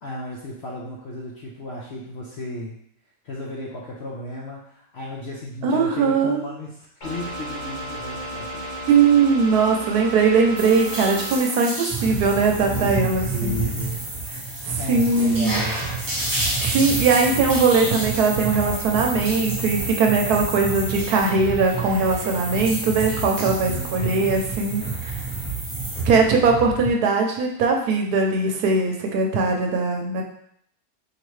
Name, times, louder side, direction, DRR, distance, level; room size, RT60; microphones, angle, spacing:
voice 1, 0.0-2.8 3.2-8.7 12.7-14.0 14.8-15.8 23.4-24.4, left 1 dB, 60° left, -4 dB, 0.7 m, -34 dB
voice 2, 5.6-6.4 8.9-13.6 14.7-15.6 16.6-25.1 26.0-30.2, right 4 dB, 75° right, 2 dB, 1.2 m, -20 dB
sound 1, 7.0-11.4, right 1 dB, 35° left, 1.0 m, -33 dB
sound 2, 10.6-26.0, equal, 15° right, 0.8 m, -31 dB
sound 3, 11.9-26.9, right 5 dB, 5° left, 1.5 m, -31 dB
4.4 x 2.8 x 3.1 m, 0.69 s
omnidirectional pair, 1.7 m